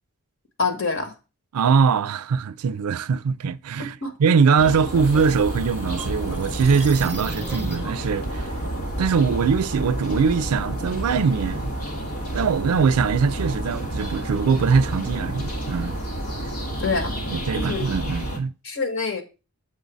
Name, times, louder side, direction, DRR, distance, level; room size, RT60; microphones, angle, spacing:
voice 1, 0.6-1.1 3.8-4.1 16.8-17.1 17.6-17.9 18.6-19.2, left 4 dB, 60° left, 1.5 m, -26 dB
voice 2, 1.5-8.5 9.0-11.7 12.3-16.0 17.3-18.5, right 5 dB, 85° right, 0.4 m, -22 dB
sound 1, 4.6-18.4, right 1 dB, 85° left, 1.5 m, -30 dB
sound 2, 4.6-8.1, right 2 dB, 10° right, 1.1 m, -37 dB
7.5 x 4.0 x 6.1 m
head